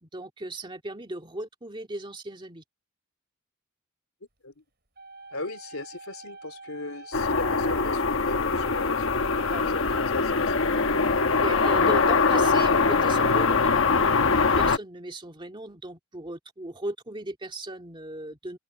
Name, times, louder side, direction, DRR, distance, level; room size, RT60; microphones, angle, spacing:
voice 1, 0.0-2.6 9.5-9.7 11.4-18.6, right 1 dB, 25° right, 2.1 m, -37 dB
sound 1, 5.0-9.9, right 3 dB, 50° right, 4.5 m, -45 dB
voice 2, 5.3-9.2 9.7-11.0, left 2 dB, 90° left, 3.3 m, -38 dB
sound 2, 7.1-14.8, left 4 dB, 65° left, 1.1 m, -22 dB
open air
head